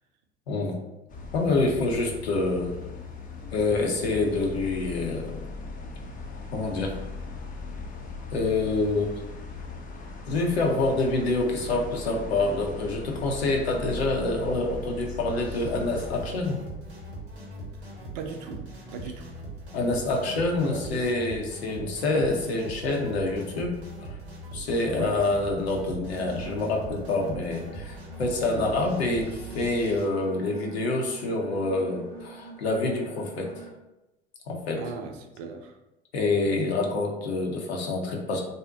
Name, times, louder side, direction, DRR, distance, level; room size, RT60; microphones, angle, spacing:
voice 1, 0.5-0.8 1.3-2.8 3.5-5.4 6.5-6.9 8.3-9.2 10.3-16.6 19.7-23.8 24.5-33.5 34.5-34.8 36.1-38.4, left 2 dB, 85° left, 1 dB, 0.7 m, -27 dB
sound 1, 1.1-16.3, left 4 dB, 25° left, 0.5 m, -39 dB
sound 2, 15.3-30.0, right 2 dB, 85° right, 0.9 m, -41 dB
voice 2, 18.1-18.6 18.9-19.3 20.5-21.1 24.9-25.2 34.8-35.8, right 5 dB, 60° right, 5 dB, 0.6 m, -38 dB
sound 3, 26.1-33.7, right 4 dB, 15° right, 0.8 m, -46 dB
2.6 x 2.1 x 3.6 m, 0.98 s
hypercardioid pair, 75°, 31 cm